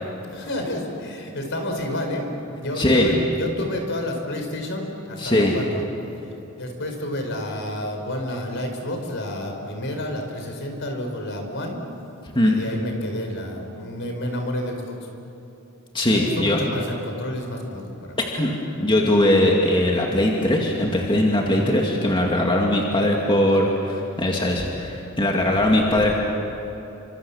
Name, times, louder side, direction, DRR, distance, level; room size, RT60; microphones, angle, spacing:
voice 1, 0.3-5.8 6.6-11.8 12.4-15.1 16.0-18.2 21.4-21.8 25.5-25.6, left 1 dB, 60° left, 3 dB, 4.8 m, -30 dB
voice 2, 2.8-3.1 5.2-5.6 12.3-12.5 15.9-16.6 18.3-26.2, left 1 dB, 25° left, -1 dB, 2.3 m, -20 dB
30.0 x 26.0 x 7.2 m, 3.0 s
head